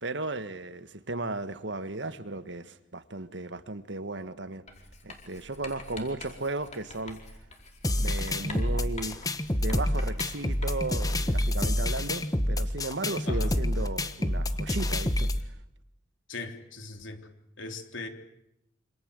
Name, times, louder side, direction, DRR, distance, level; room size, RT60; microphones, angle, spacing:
voice 1, 0.0-4.6 5.0-7.2 8.0-9.2 9.6-15.3, right 2 dB, 65° right, 1.6 m, -35 dB
Writing, 4.7-11.1, left 2 dB, 35° left, 4.7 m, -46 dB
sound 1, 7.8-15.4, left 1 dB, 20° left, 1.3 m, -28 dB
voice 2, 16.3-17.2 17.6-18.1, left 3 dB, 80° left, 3.5 m, -39 dB
27.0 x 26.5 x 8.2 m
head